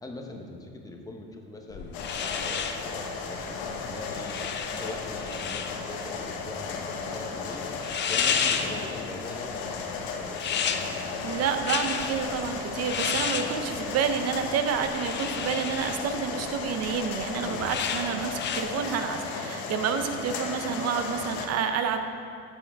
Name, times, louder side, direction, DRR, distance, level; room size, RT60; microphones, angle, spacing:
voice 1, 0.0-2.0 2.3-4.3 4.7-7.7 8.1-11.3 17.4-17.8, left 2 dB, 10° left, 2 dB, 1.1 m, -42 dB
sound 1, 1.7-18.6, left 7 dB, 35° left, 0.6 m, -33 dB
sound 2, 1.9-21.5, left 4 dB, 85° left, 1.2 m, -35 dB
voice 2, 11.2-22.0, right 7 dB, 50° right, 7 dB, 0.9 m, -29 dB
12.5 x 7.2 x 3.6 m, 2.3 s
supercardioid pair, 115°, 32 cm